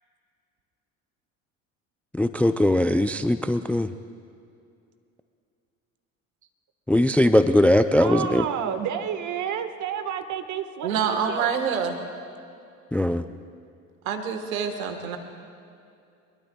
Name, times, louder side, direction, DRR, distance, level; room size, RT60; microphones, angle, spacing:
voice 1, 2.1-3.9 6.9-8.4 12.9-13.3, left 1 dB, 5° left, 12 dB, 0.4 m, -20 dB
voice 2, 7.9-11.5, right 8 dB, 45° right, 7 dB, 1.5 m, -30 dB
voice 3, 10.8-12.0 14.0-15.2, right 7 dB, 80° right, 6 dB, 1.5 m, -26 dB
23.5 x 22.0 x 2.3 m, 2.5 s
hypercardioid pair, 65°, 41 cm